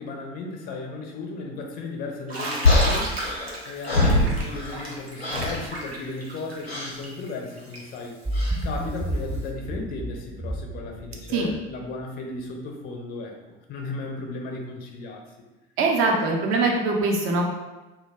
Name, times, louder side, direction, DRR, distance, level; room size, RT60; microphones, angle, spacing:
voice 1, 0.0-3.2 3.6-8.2 8.6-15.2, left 3 dB, 30° left, 1 dB, 0.4 m, -35 dB
Bathtub (filling or washing), 2.3-8.0, right 1 dB, 90° right, 0.5 m, -34 dB
sound 1, 2.6-4.9 5.2-5.6 6.6-7.0 8.3-8.6, left 2 dB, 90° left, 0.7 m, -23 dB
sound 2, 8.3-11.8, right 1 dB, 15° right, 0.8 m, -31 dB
voice 2, 15.8-17.4, right 3 dB, 45° right, 0 dB, 0.6 m, -22 dB
2.2 x 2.0 x 3.2 m, 1.1 s
figure-of-eight pair, 65°, 30 cm